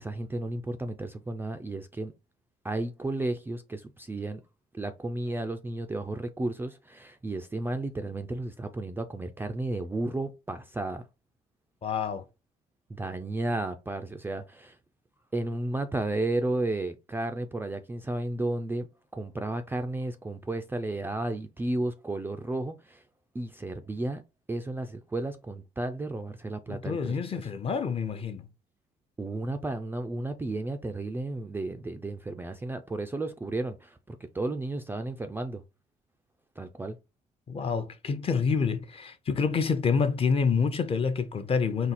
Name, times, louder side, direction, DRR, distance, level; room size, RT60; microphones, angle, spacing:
voice 1, 0.0-2.1 2.6-4.4 4.7-11.0 12.9-14.8 15.3-23.0 23.3-24.2 24.5-27.4 29.2-35.6 36.6-37.0, right 2 dB, 15° right, 0.4 m, -33 dB
voice 2, 11.8-12.2 26.7-28.5 37.5-41.9, left 5 dB, 35° left, 0.7 m, -27 dB
4.2 x 2.3 x 4.1 m
cardioid pair, 110°, 17 cm